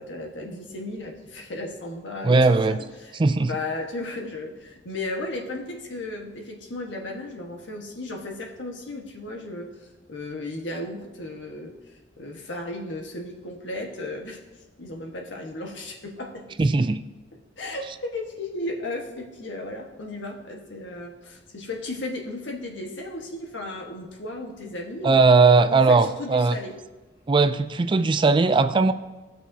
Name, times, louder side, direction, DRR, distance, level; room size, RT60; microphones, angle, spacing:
voice 1, 0.0-2.4 2.7-14.4 14.8-16.5 17.6-25.3 25.7-26.8, left 2 dB, 90° left, 1 dB, 1.4 m, -35 dB
voice 2, 2.2-2.8 3.1-3.5 16.6-17.0 25.0-26.6 27.3-28.9, right 3 dB, 25° right, 11 dB, 0.3 m, -18 dB
18.0 x 6.1 x 2.8 m, 1.2 s
head